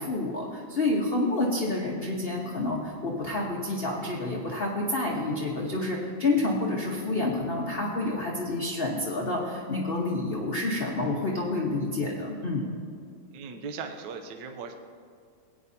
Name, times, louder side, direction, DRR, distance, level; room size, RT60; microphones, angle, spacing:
voice 1, 0.0-12.6, left 2 dB, 40° left, -2 dB, 0.9 m, -29 dB
voice 2, 13.3-14.8, right 5 dB, 70° right, 5 dB, 1.3 m, -38 dB
17.0 x 9.2 x 2.7 m, 2.3 s
omnidirectional pair, 2.3 m